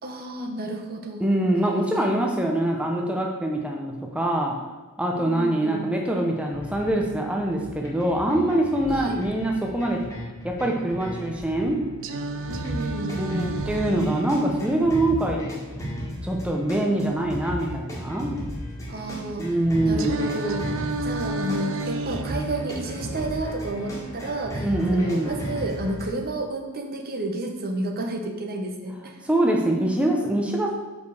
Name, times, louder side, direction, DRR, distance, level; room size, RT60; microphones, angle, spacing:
voice 1, 0.0-1.3 1.9-2.1 5.1-5.9 8.9-9.2 12.5-13.5 18.9-19.6 19.8-29.2, right 1 dB, 45° right, 4 dB, 0.9 m, -31 dB
voice 2, 1.2-4.5 5.0-10.0 10.4-11.9 13.2-15.4 16.2-18.4 19.4-20.2 24.6-25.3 29.2-30.7, right 1 dB, 5° right, 0 dB, 0.7 m, -24 dB
sound 1, 6.5-26.1, equal, 15° left, 1.8 m, -35 dB
Singing, 12.0-16.0 20.0-24.0, right 2 dB, 60° right, 0.5 m, -33 dB
5.3 x 5.1 x 6.3 m, 1.2 s
head